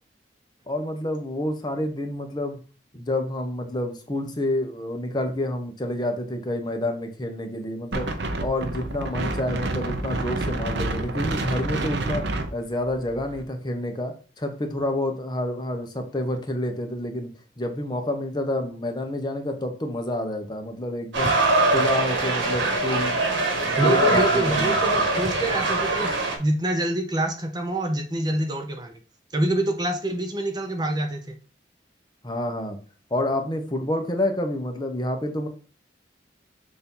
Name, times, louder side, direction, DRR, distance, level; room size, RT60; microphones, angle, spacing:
voice 1, 0.7-2.6 2.9-8.1 8.4-17.3 17.6-21.3 21.7-23.2 23.6-24.8 32.2-32.8 33.1-35.5, left 1 dB, 25° left, 5 dB, 0.8 m, -28 dB
Wind, 7.9-13.4, right 2 dB, 70° right, 0.8 m, -28 dB
sound 1, 21.1-26.4, right 2 dB, 85° right, 1.7 m, -22 dB
voice 2, 23.8-26.1 26.4-28.9 29.3-31.4, right 1 dB, 20° right, 4 dB, 0.6 m, -26 dB
6.8 x 2.7 x 5.4 m, 0.37 s
head